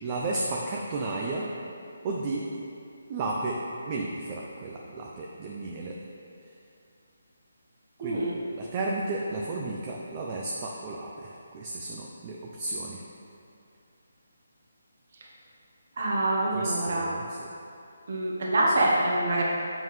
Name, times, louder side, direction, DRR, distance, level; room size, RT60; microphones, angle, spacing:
voice 1, 0.0-1.5 2.0-2.5 3.1-3.6 3.9-5.9 8.0-8.2 8.6-13.0 16.5-17.5, right 2 dB, 20° right, -2 dB, 0.4 m, -33 dB
voice 2, 8.0-8.4 16.0-17.1 18.1-19.4, right 1 dB, 50° right, -3 dB, 1.0 m, -25 dB
7.4 x 5.4 x 3.1 m, 2.5 s
hypercardioid pair, 170°, 0 cm